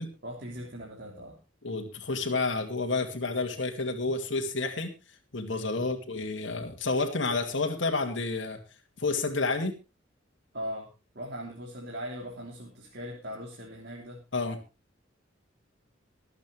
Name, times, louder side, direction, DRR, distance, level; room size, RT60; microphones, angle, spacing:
voice 1, 0.2-1.4 5.8-5.9 10.5-14.2, equal, 55° right, -3 dB, 3.2 m, -40 dB
voice 2, 1.6-4.9 5.3-8.6 9.0-9.7 14.3-14.6, left 3 dB, 70° left, 3 dB, 2.2 m, -30 dB
24.5 x 8.3 x 3.3 m, 0.28 s
head